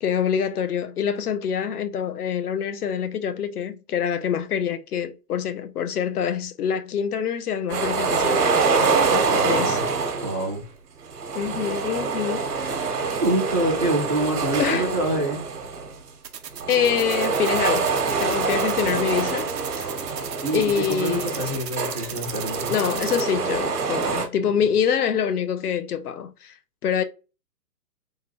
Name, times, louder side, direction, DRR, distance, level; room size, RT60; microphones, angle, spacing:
voice 1, 0.0-9.8 11.3-12.9 14.6-14.9 16.7-19.9 20.5-21.4 22.7-26.6 26.8-27.0, left 8 dB, 65° left, 0.5 m, -26 dB
sound 1, 7.7-10.5 11.1-15.9 16.5-24.3, right 4 dB, 65° right, 1.1 m, -25 dB
voice 2, 9.3-9.8 10.2-10.6 13.2-15.4 20.4-22.7 24.5-24.6, right 1 dB, 20° right, 0.5 m, -26 dB
sound 2, 16.2-23.2, right 9 dB, 80° right, 0.8 m, -35 dB
3.6 x 2.2 x 2.9 m
hypercardioid pair, 175°, 50 cm